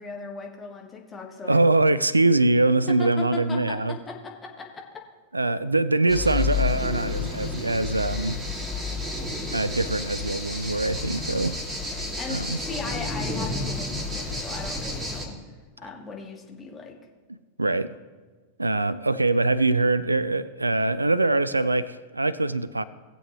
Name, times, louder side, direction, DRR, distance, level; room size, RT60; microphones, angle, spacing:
voice 1, 0.0-1.6 2.9-5.0 11.9-15.4 15.8-17.0, left 4 dB, 20° left, 1 dB, 1.7 m, -38 dB
voice 2, 1.4-4.0 5.3-8.4 9.5-11.6 12.3-12.6 17.6-17.9 18.6-22.8, right 2 dB, 80° right, 17 dB, 0.4 m, -23 dB
sound 1, 6.1-15.3, left 3 dB, 10° right, 2.5 m, -30 dB
18.5 x 7.7 x 3.2 m, 1.4 s
figure-of-eight pair, 90°, 0 cm